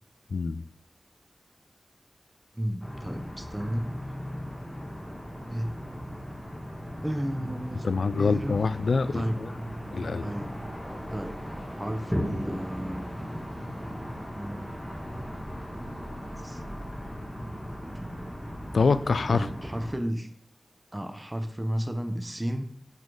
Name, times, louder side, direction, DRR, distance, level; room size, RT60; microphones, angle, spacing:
voice 1, 0.3-0.6 7.8-9.5 9.9-10.3 18.7-19.5, left 4 dB, 85° left, 15 dB, 0.3 m, -25 dB
voice 2, 2.5-4.2 5.5-5.8 7.0-7.9 8.2-8.6 9.1-10.5 11.1-11.4 11.8-13.0 14.3-14.8 16.4-16.6 17.1-17.2 17.9-18.3 19.3-20.3 20.9-22.7, equal, 15° right, 6 dB, 0.7 m, -33 dB
sound 1, 2.8-19.9, equal, ahead, 2.4 m, -37 dB
7.1 x 4.0 x 4.9 m, 0.67 s
wide cardioid pair, 60°, 0 cm